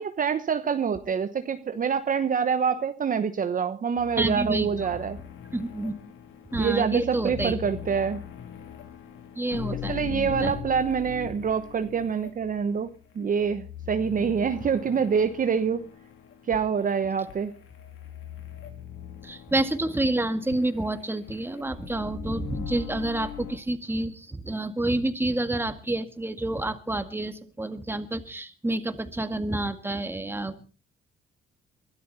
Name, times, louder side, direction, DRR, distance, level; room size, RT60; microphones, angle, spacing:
voice 1, 0.0-5.2 6.6-8.2 9.7-12.9 13.1-15.9 16.5-17.5, right 6 dB, 45° right, 9 dB, 1.1 m, -26 dB
sound 1, 4.0-23.6, left 10 dB, 90° left, 2.9 m, -41 dB
voice 2, 4.2-4.7 5.5-6.0 6.5-7.6 9.4-10.5 19.2-30.6, right 1 dB, 10° right, 8 dB, 2.0 m, -29 dB
23.0 x 12.5 x 4.2 m, 0.36 s
cardioid pair, 90°, 20 cm